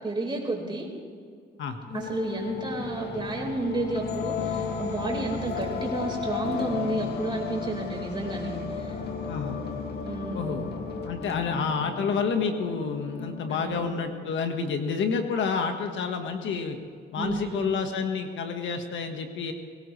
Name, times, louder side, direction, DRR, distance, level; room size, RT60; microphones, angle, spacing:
voice 1, 0.0-0.9 1.9-9.0 10.0-10.6 13.5-13.8 17.2-17.7, right 2 dB, 25° right, 0 dB, 4.6 m, -31 dB
sound 1, 1.9-14.8, left 5 dB, 55° left, 2.2 m, -34 dB
voice 2, 9.3-9.6 10.3-10.7 11.0-16.8 17.1-19.5, left 5 dB, 70° left, 5 dB, 1.6 m, -29 dB
22.0 x 17.5 x 3.3 m, 2.2 s
cardioid pair, 90°, 20 cm